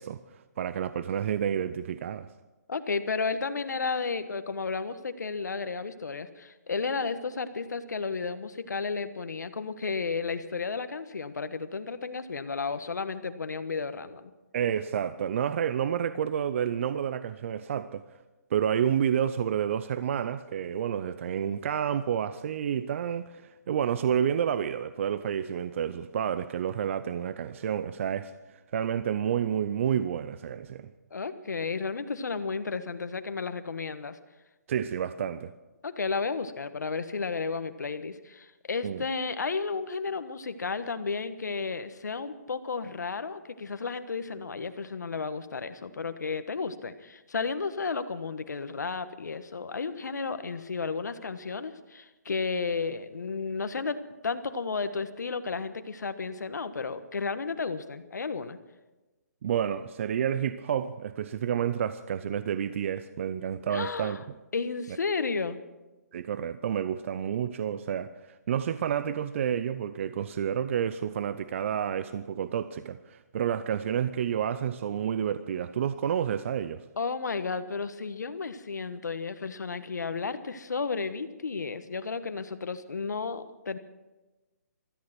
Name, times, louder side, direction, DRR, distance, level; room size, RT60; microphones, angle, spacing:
voice 1, 0.0-2.3 14.5-18.2 18.5-30.9 34.7-35.5 38.8-39.0 59.4-64.2 66.1-76.8, right 9 dB, 45° right, 0.6 m, -30 dB
voice 2, 2.7-14.3 31.1-34.2 35.8-58.6 63.7-64.2 64.5-65.6 77.0-83.8, left 4 dB, 85° left, 1.3 m, -33 dB
17.0 x 13.5 x 6.0 m
hypercardioid pair, 155°, 9 cm